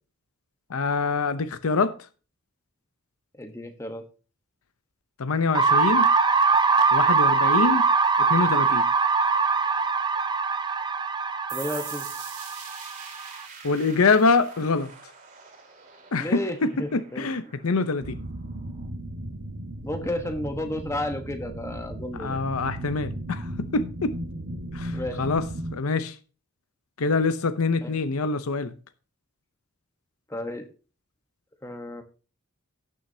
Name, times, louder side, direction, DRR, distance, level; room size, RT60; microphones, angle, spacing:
voice 1, 0.7-1.9 5.2-6.1 6.9-7.9 8.3-8.9 13.6-14.9 16.1-18.2 22.2-24.1 24.7-25.4 25.7-26.1 27.0-28.7, left 4 dB, 80° left, 0.7 m, -25 dB
voice 2, 3.3-4.1 11.5-12.1 16.1-17.3 19.8-22.4 24.9-25.2 27.8-28.0 30.3-30.7 31.6-32.0, left 1 dB, 15° left, 1.1 m, -32 dB
sound 1, 5.5-13.4, right 4 dB, 20° right, 0.5 m, -22 dB
sound 2, 11.5-18.9, right 6 dB, 35° right, 2.6 m, -44 dB
sound 3, 18.0-25.8, right 1 dB, 75° right, 1.6 m, -36 dB
17.0 x 6.4 x 2.7 m
head